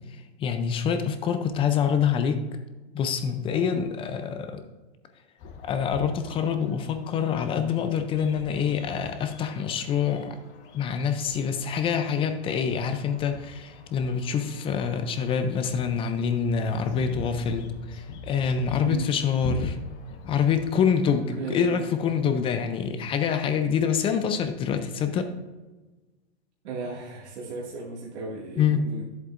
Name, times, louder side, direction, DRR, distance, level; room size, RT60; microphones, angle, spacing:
voice 1, 0.4-2.4 2.9-4.6 5.6-10.4 10.7-19.8 20.3-25.3 28.6-28.8, left 7 dB, 15° left, 8 dB, 0.4 m, -26 dB
sound 1, 5.4-22.5, left 5 dB, 35° left, 0.9 m, -43 dB
voice 2, 18.8-19.1 21.3-21.9 26.6-29.0, right 3 dB, 75° right, -4 dB, 2.1 m, -35 dB
10.5 x 7.9 x 2.5 m, 1.2 s
supercardioid pair, 140°, 34 cm